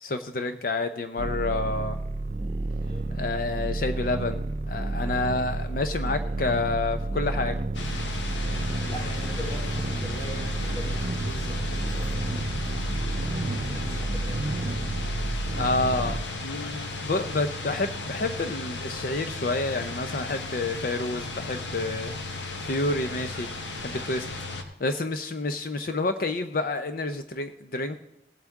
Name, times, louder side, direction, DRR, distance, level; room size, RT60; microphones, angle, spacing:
voice 1, 0.0-2.0 3.1-7.6 15.6-22.1 22.6-23.5 23.8-24.3 24.6-28.0, left 2 dB, 50° left, 9 dB, 0.6 m, -29 dB
sound 1, 1.2-16.2, right 2 dB, 35° right, 0.4 m, -30 dB
voice 2, 2.8-3.1 8.9-12.3 13.3-14.5, equal, 35° left, -2 dB, 2.7 m, -41 dB
sound 2, 7.7-24.6, left 3 dB, 85° left, 1.2 m, -35 dB
18.5 x 8.1 x 3.6 m, 0.83 s
head